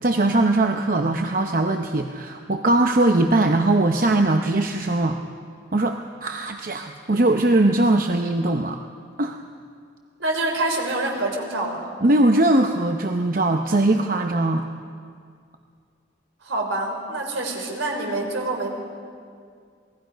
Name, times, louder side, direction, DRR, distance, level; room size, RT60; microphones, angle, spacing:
voice 1, 0.0-5.2 5.7-8.8 9.2-9.4 12.0-14.7, right 2 dB, 45° right, 4 dB, 0.8 m, -20 dB
voice 2, 10.2-11.9 16.4-18.7, right 2 dB, 85° right, 2 dB, 3.8 m, -26 dB
27.5 x 19.0 x 5.2 m, 2.2 s
head